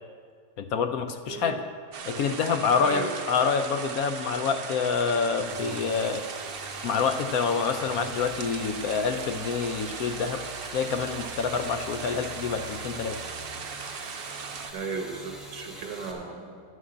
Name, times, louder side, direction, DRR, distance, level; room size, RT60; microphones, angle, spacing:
voice 1, 0.6-1.6 2.1-6.2 6.8-10.4 10.7-13.2, left 5 dB, 70° left, 8 dB, 1.0 m, -27 dB
Water Stream, 1.9-14.7, right 6 dB, 65° right, 0.5 m, -38 dB
voice 2, 2.8-3.2 14.7-16.6, right 5 dB, 90° right, 3 dB, 1.9 m, -35 dB
sound 1, 5.4-16.1, equal, ahead, 1.5 m, -44 dB
11.0 x 6.4 x 7.8 m, 2.1 s
omnidirectional pair, 1.8 m